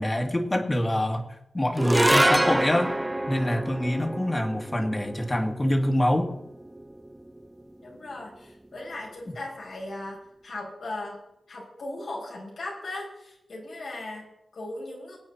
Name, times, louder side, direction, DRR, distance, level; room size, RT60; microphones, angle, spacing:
voice 1, 0.0-2.9 3.3-6.3, left 1 dB, 30° left, 5 dB, 2.2 m, -25 dB
sound 1, 1.8-8.2, right 1 dB, 15° right, 0.9 m, -27 dB
voice 2, 7.8-11.2 11.5-15.2, left 2 dB, 80° left, -3 dB, 6.3 m, -38 dB
22.5 x 8.9 x 4.4 m, 0.84 s
cardioid pair, 50°, 0 cm